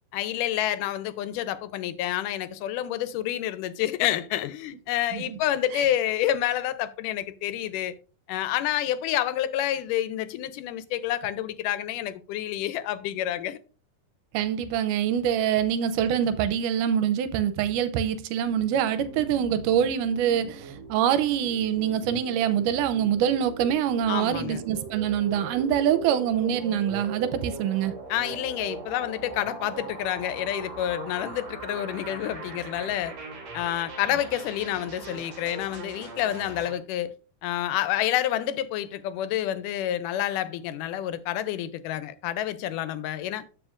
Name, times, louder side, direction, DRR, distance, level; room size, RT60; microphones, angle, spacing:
voice 1, 0.1-7.9 8.3-13.6 24.1-24.6 28.1-33.1 33.5-37.1 37.4-43.5, left 12 dB, 85° left, 2.3 m, -28 dB
voice 2, 14.3-28.0, right 9 dB, 85° right, 2.2 m, -25 dB
sound 1, 18.5-36.7, right 4 dB, 50° right, 2.6 m, -40 dB
14.0 x 4.7 x 2.5 m
omnidirectional pair, 3.6 m